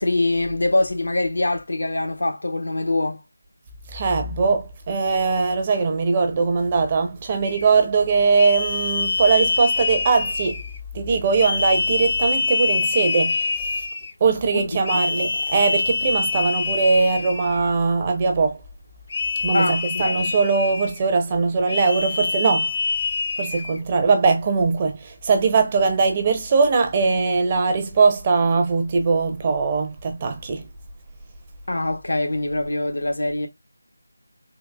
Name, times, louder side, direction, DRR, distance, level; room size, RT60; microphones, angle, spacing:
voice 1, 0.0-3.2 14.5-15.0 19.5-20.2 31.7-33.5, left 2 dB, 70° left, 1.0 m, -24 dB
voice 2, 3.9-10.6 10.9-13.5 14.2-18.6 19.4-22.7 23.4-25.0 25.2-30.6, right 4 dB, 25° right, 0.7 m, -20 dB
sound 1, 7.4-7.7 8.4-10.8 11.4-14.1 14.8-17.6 19.1-21.0 21.7-23.8, left 4 dB, 35° left, 0.5 m, -25 dB
3.9 x 2.7 x 2.3 m
figure-of-eight pair, 165°, 0 cm